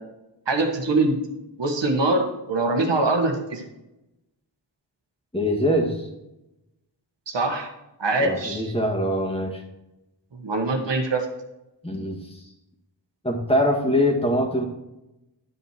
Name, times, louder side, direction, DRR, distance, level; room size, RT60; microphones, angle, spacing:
voice 1, 0.5-1.2 1.6-3.6 7.3-7.7 8.0-8.7 10.4-11.2, right 2 dB, 80° right, 4 dB, 1.5 m, -23 dB
voice 2, 5.3-6.1 8.2-9.6 11.8-12.5 13.2-14.6, equal, 15° left, 0 dB, 2.0 m, -23 dB
11.0 x 5.7 x 4.6 m, 0.93 s
wide cardioid pair, 80°, 43 cm